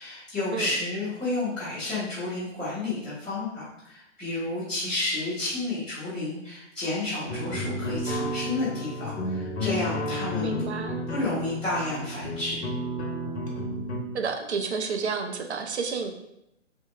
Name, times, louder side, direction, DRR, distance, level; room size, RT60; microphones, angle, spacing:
voice 1, 0.0-10.5 11.1-12.7, left 2 dB, ahead, -17 dB, 0.4 m, -31 dB
sound 1, 7.3-14.0, left 1 dB, 60° left, 0.7 m, -32 dB
voice 2, 10.4-11.1 14.1-16.1, right 5 dB, 60° right, 5 dB, 0.5 m, -30 dB
3.4 x 2.7 x 2.3 m, 0.82 s
figure-of-eight pair, 130°, 38 cm